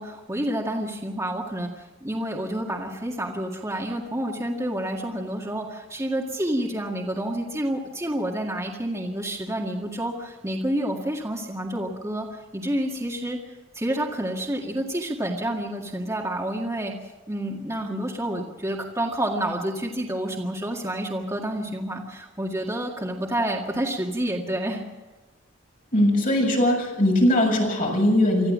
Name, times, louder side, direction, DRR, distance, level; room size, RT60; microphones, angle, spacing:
voice 1, 0.0-13.4 13.7-16.9 17.3-24.8, right 1 dB, 15° right, -1 dB, 2.0 m, -29 dB
voice 2, 25.9-28.5, left 1 dB, 45° left, 0 dB, 7.0 m, -20 dB
25.0 x 14.5 x 7.5 m, 1.2 s
head